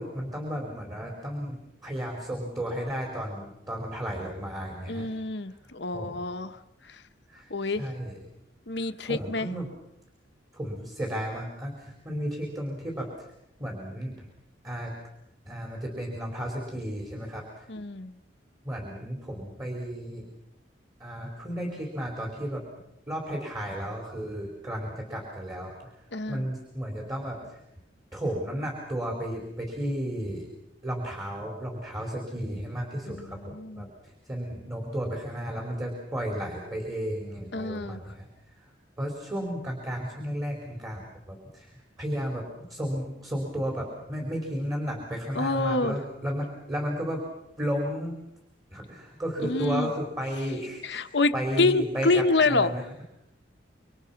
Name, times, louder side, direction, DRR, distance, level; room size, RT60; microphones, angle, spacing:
voice 1, 0.0-5.1 5.9-6.2 7.3-8.2 8.7-9.7 10.5-13.3 13.6-14.3 14.6-14.9 15.4-17.7 18.6-20.2 21.0-22.6 23.1-25.9 26.3-27.6 28.1-30.5 30.8-33.4 33.8-38.3 38.6-38.7 39.0-42.4 42.7-47.2 47.6-48.2 48.7-51.1 51.3-52.8, equal, 20° right, 0 dB, 4.9 m, -33 dB
voice 2, 4.9-6.6 6.8-7.0 7.5-7.9 8.7-9.5 17.7-18.1 26.1-26.5 33.1-33.9 37.5-38.0 45.3-46.0 49.4-49.9 50.8-52.7, left 3 dB, 65° left, 9 dB, 1.2 m, -27 dB
28.0 x 24.5 x 6.0 m, 0.81 s
head